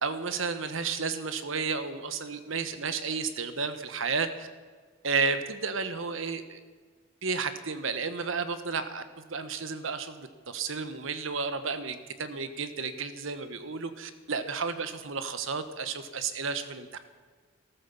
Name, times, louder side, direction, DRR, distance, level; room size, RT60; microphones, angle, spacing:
voice 1, 0.0-4.5 5.0-6.6 7.2-9.0 9.3-17.0, right 5 dB, 65° right, 10 dB, 1.2 m, -32 dB
14.5 x 13.5 x 7.1 m, 1.5 s
head